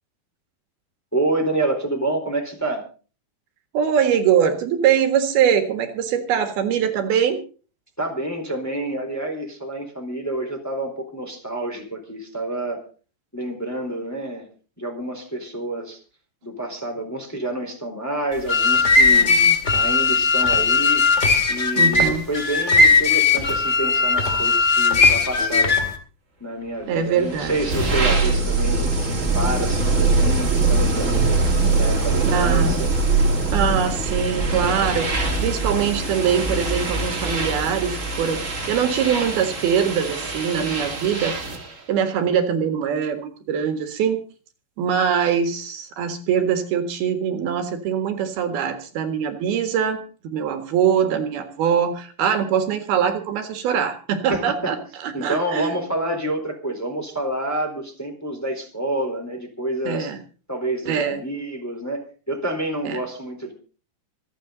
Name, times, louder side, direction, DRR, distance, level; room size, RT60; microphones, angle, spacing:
voice 1, 1.1-2.8 8.0-12.8 13.3-14.5 14.8-16.0 16.4-19.3 19.7-21.1 21.5-25.8 26.4-28.9 29.3-31.4 31.7-32.9 54.3-54.7 55.1-60.1 60.5-63.5, right 1 dB, 5° left, 2 dB, 3.5 m, -28 dB
voice 2, 3.7-7.4 19.1-19.5 21.8-22.2 26.9-27.6 32.2-32.8 33.5-41.4 41.9-44.2 44.8-50.0 50.2-55.8 59.9-60.2 60.9-61.2 62.9-63.0, right 8 dB, 75° right, 7 dB, 3.6 m, -23 dB
sound 1, 18.3-26.0, left 4 dB, 25° left, 1.6 m, -18 dB
sound 2, 27.1-41.7, right 3 dB, 25° right, 2.3 m, -22 dB
26.0 x 9.3 x 4.0 m, 0.38 s
omnidirectional pair, 4.5 m